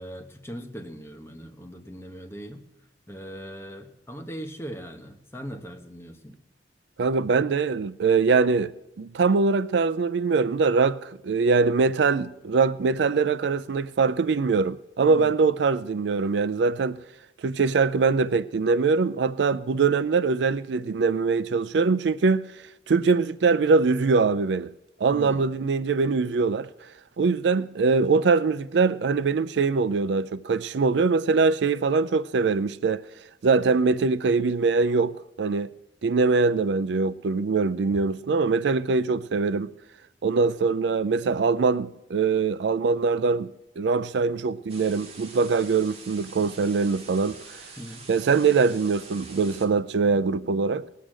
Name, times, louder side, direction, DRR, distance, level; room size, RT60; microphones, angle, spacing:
voice 1, 0.0-2.6 3.1-6.4 15.0-15.4 25.1-25.5 47.8-48.1, equal, 15° left, 1.2 m, -40 dB
voice 2, 7.0-8.7 9.0-17.0 17.4-22.4 22.9-24.7 25.0-26.7 27.2-33.0 33.4-35.7 36.0-39.7 40.2-43.5 43.8-47.4 48.1-50.8, right 4 dB, 70° right, 0.4 m, -23 dB
sound 1, 44.7-49.6, right 4 dB, 35° right, 2.1 m, -45 dB
19.0 x 6.5 x 7.5 m
head